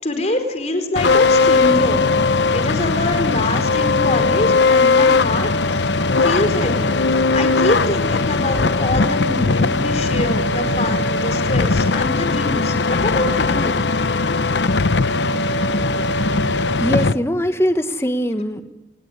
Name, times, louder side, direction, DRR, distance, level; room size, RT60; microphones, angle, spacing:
voice 1, 0.0-2.1 2.5-5.9 6.2-7.0 7.3-13.8, left 1 dB, 40° left, 4.5 m, -24 dB
sound 1, 1.0-17.1, left 3 dB, 85° left, 0.9 m, -18 dB
voice 2, 16.2-18.6, equal, 15° left, 1.3 m, -22 dB
28.5 x 19.5 x 9.8 m
head